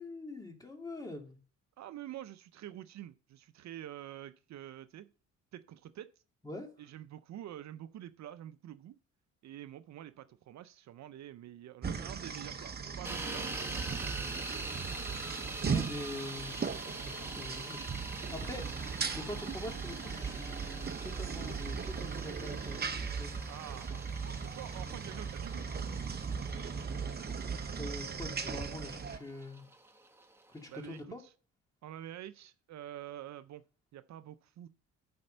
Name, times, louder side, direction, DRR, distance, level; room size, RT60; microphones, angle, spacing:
voice 1, 0.0-1.4 6.4-6.7 15.7-16.7 17.0-23.4 27.8-29.7 30.5-31.2, left 2 dB, 10° left, 2.3 m, -44 dB
voice 2, 1.8-5.1 5.5-6.1 6.8-9.0 9.4-14.5 23.5-24.0 24.4-25.7 30.7-31.3 31.8-33.6 33.9-34.7, right 12 dB, 65° right, 0.6 m, -47 dB
sound 1, 11.8-29.2, right 5 dB, 35° right, 0.9 m, -38 dB
sound 2, 13.0-31.0, right 2 dB, 10° right, 1.2 m, -45 dB
9.5 x 4.3 x 6.6 m
cardioid pair, 90°, 30 cm